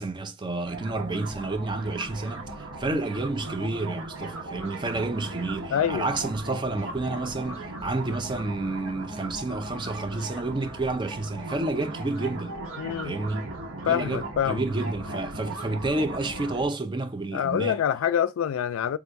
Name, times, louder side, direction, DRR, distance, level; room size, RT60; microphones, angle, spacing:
voice 1, 0.0-12.6 13.0-13.5 13.9-17.8, right 2 dB, 25° right, 0.4 m, -30 dB
sound 1, 0.6-16.7, right 2 dB, 80° right, 1.0 m, -38 dB
voice 2, 5.7-6.1 12.8-13.2 13.9-14.6 17.3-19.0, left 9 dB, 85° left, 0.3 m, -26 dB
3.6 x 2.6 x 4.4 m
head